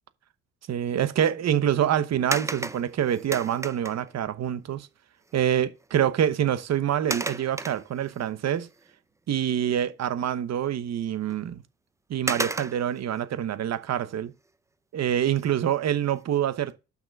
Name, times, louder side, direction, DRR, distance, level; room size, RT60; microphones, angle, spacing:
voice 1, 0.7-4.9 5.3-8.7 9.3-11.6 12.1-14.3 14.9-16.8, right 10 dB, 60° right, 1.0 m, -26 dB
sound 1, 2.3-4.1 5.3-5.4 5.8-6.1 7.1-8.3 8.8-8.9 11.3-11.4 12.3-13.0 15.3-15.6 16.1-16.2, right 2 dB, 10° right, 0.5 m, -33 dB
6.6 x 5.9 x 5.3 m
cardioid pair, 90°, 30 cm